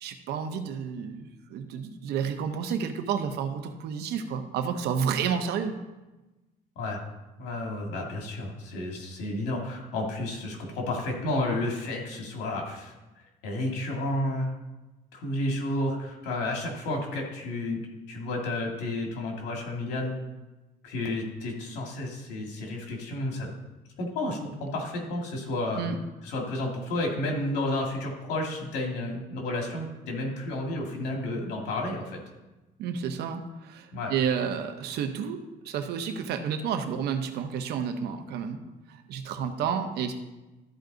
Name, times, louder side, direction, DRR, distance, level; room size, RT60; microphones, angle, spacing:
voice 1, 0.0-5.9 25.8-26.0 32.8-35.4 35.6-38.6 38.9-40.1, right 7 dB, 75° right, 6 dB, 1.0 m, -30 dB
voice 2, 7.4-13.0 13.4-14.5 15.1-17.8 18.1-20.1 20.8-23.5 24.0-25.9 26.2-32.2 33.9-34.1, left 1 dB, 90° left, 0 dB, 2.1 m, -31 dB
13.0 x 4.7 x 3.9 m, 1.1 s
cardioid pair, 110°, 17 cm